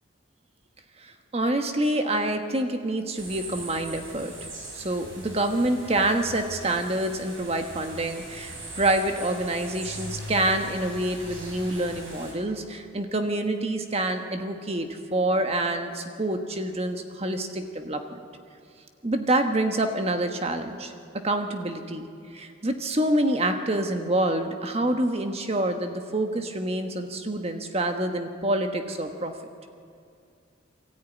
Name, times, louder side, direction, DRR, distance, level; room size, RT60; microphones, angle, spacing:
voice 1, 1.0-4.3 4.7-18.2 19.0-20.9 21.2-22.1 22.3-29.3, right 1 dB, 30° right, 6 dB, 1.3 m, -27 dB
sound 1, 3.2-12.3, right 1 dB, 85° right, 4.7 m, -40 dB
23.0 x 13.5 x 9.3 m, 2.3 s
head